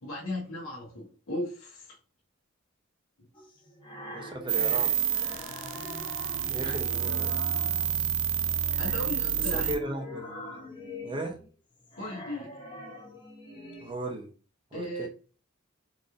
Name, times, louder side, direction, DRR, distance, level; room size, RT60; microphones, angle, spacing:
voice 1, 0.0-2.0 8.8-9.7 12.0-12.6 14.7-15.1, left 1 dB, 85° left, 1.0 m, -36 dB
sound 1, 3.3-8.1 8.6-13.9, left 2 dB, 25° left, 0.9 m, -43 dB
voice 2, 4.1-5.0 6.5-7.4 9.5-10.3 11.0-11.4 13.8-14.3 14.7-15.1, right 1 dB, 25° right, 0.6 m, -36 dB
sound 2, 4.5-9.8, right 9 dB, 65° right, 0.4 m, -29 dB
3.9 x 3.1 x 2.5 m
head